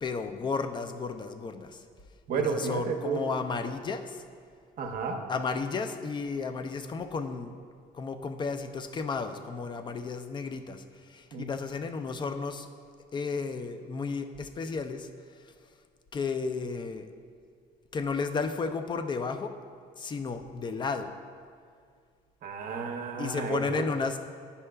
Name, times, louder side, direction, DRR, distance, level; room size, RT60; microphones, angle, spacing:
voice 1, 0.0-1.8 2.3-4.2 5.3-7.6 7.9-12.7 13.1-15.1 16.1-17.1 17.9-19.5 20.0-21.1 23.2-24.2, left 4 dB, 25° left, 8 dB, 0.4 m, -33 dB
voice 2, 2.3-3.2 4.8-5.2 11.3-11.5 22.4-23.9, right 5 dB, 55° right, 3 dB, 0.7 m, -32 dB
9.6 x 5.5 x 2.3 m, 2.1 s
cardioid pair, 110°, 17 cm